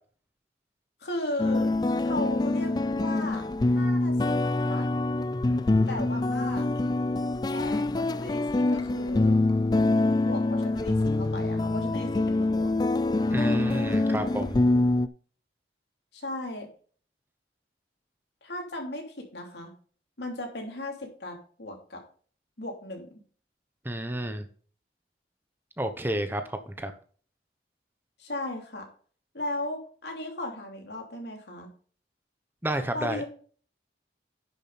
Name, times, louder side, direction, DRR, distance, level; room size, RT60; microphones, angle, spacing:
voice 1, 1.0-1.7 2.0-4.9 5.9-6.7 7.5-9.4 10.2-12.9 16.1-16.7 18.4-19.7 20.2-22.0 22.6-23.1 28.2-28.9 29.3-31.7 32.9-33.2, left 1 dB, 75° left, 2 dB, 3.1 m, -36 dB
sound 1, 1.4-15.1, left 2 dB, 25° left, 0.3 m, -25 dB
voice 2, 13.3-14.6 23.8-24.4 25.8-26.9 32.6-33.2, right 1 dB, 10° right, 8 dB, 0.9 m, -30 dB
10.5 x 6.9 x 4.1 m, 0.43 s
head